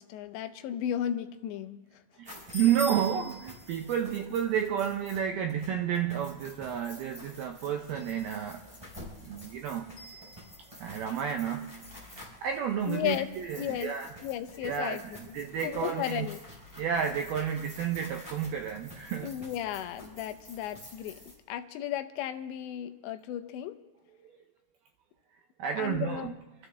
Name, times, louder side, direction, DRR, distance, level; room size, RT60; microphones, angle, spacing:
voice 1, 0.0-2.0 12.9-13.9 14.2-15.4 15.6-16.4 19.2-21.2 21.5-23.8 25.8-26.4, left 11 dB, 80° left, 9 dB, 2.9 m, -35 dB
sound 1, 2.2-21.3, left 1 dB, 5° right, 3.8 m, -47 dB
voice 2, 2.2-8.6 9.2-9.9 10.7-14.1 14.6-16.3 16.8-19.3 24.2-24.4 25.6-26.3, right 8 dB, 80° right, 4 dB, 2.2 m, -31 dB
27.0 x 14.0 x 3.4 m, 1.0 s
omnidirectional pair, 5.3 m